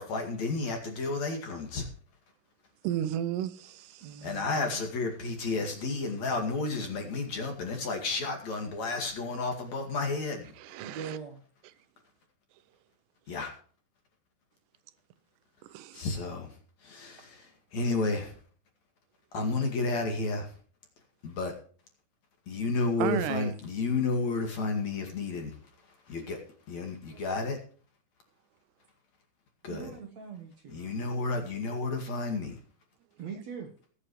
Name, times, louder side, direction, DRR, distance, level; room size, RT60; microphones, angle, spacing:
voice 1, 0.0-1.9 4.2-10.5 13.3-13.5 15.9-18.4 19.3-20.5 21.2-21.5 22.5-25.6 25.9-26.4 26.7-27.6 29.6-29.9 30.7-32.6, left 3 dB, 50° left, 2.9 m, -32 dB
voice 2, 2.8-4.3 10.6-11.2 15.7-16.1 23.0-23.5 27.1-27.2, right 11 dB, 85° right, 2.9 m, -33 dB
voice 3, 4.0-4.8 10.8-11.4 29.7-31.2 33.2-33.7, right 7 dB, 60° right, 2.0 m, -42 dB
22.0 x 8.5 x 3.1 m
omnidirectional pair, 4.8 m